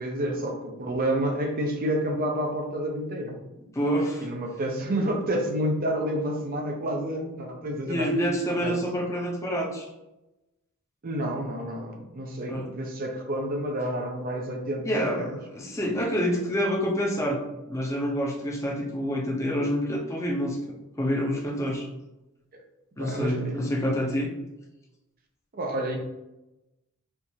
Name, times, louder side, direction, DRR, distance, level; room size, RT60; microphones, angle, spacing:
voice 1, 0.0-3.4 4.2-8.1 8.6-8.8 11.0-15.4 22.5-22.6 23.0-23.6 25.5-26.0, right 1 dB, 40° right, 2 dB, 0.6 m, -29 dB
voice 2, 3.7-4.3 7.9-9.9 12.5-12.7 14.8-17.4 17.7-20.6 21.0-21.9 23.0-24.3, equal, 15° left, -1 dB, 0.6 m, -27 dB
4.4 x 2.5 x 2.7 m, 0.96 s
head